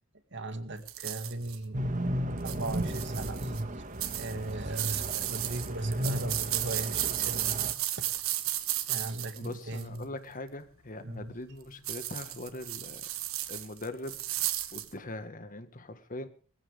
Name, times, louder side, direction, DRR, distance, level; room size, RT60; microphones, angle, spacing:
voice 1, 0.3-3.8 4.1-7.6 7.9-8.1 8.9-10.1 11.0-11.3, right 2 dB, 60° right, 2.1 m, -39 dB
small person animal(s) in leaves, 0.9-1.6 2.4-3.6 4.0-10.0 11.8-14.9, right 14 dB, 80° right, 1.8 m, -34 dB
sound 1, 1.7-7.7, right 1 dB, 40° right, 1.9 m, -34 dB
voice 2, 9.4-13.1 13.5-16.3, left 2 dB, 40° left, 1.6 m, -42 dB
21.0 x 15.0 x 3.6 m
head